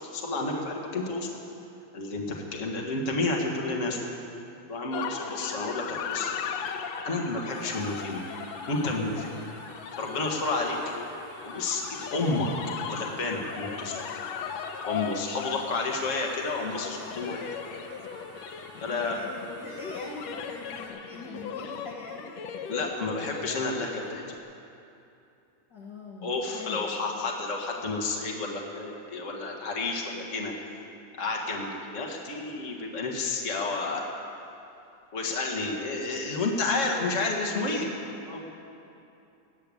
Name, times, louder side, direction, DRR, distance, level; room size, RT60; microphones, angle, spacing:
voice 1, 0.1-1.3 1.9-4.0 4.7-6.3 7.0-8.2 8.7-9.3 10.0-10.8 11.4-12.5 12.9-13.9 14.9-17.5 18.8-19.2 22.7-24.2 26.2-30.5 31.2-34.0 35.1-37.9 38.3-38.4, left 3 dB, 35° left, 0 dB, 1.2 m, -30 dB
sound 1, 4.9-24.4, left 7 dB, 80° left, 1.5 m, -38 dB
sound 2, 7.5-20.9, right 4 dB, 45° right, 1.9 m, -51 dB
voice 2, 18.8-22.3 25.7-27.0, left 3 dB, 60° left, -3 dB, 1.1 m, -42 dB
19.0 x 6.8 x 8.5 m, 2.7 s
omnidirectional pair, 3.8 m